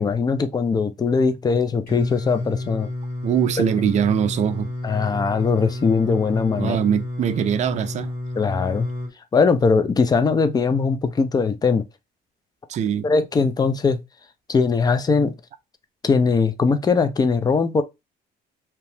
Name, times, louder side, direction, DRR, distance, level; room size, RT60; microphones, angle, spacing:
voice 1, 0.0-2.9 4.8-6.8 8.4-8.9 9.3-11.8 13.0-14.0 14.5-15.3 16.0-17.8, left 5 dB, 25° left, 0.4 m, -20 dB
Singing, 1.9-9.1, left 1 dB, 60° left, 1.8 m, -30 dB
voice 2, 3.2-4.7 6.6-8.1 12.7-13.1, right 9 dB, 45° right, 0.4 m, -22 dB
2.8 x 2.1 x 3.1 m
cardioid pair, 110°, 17 cm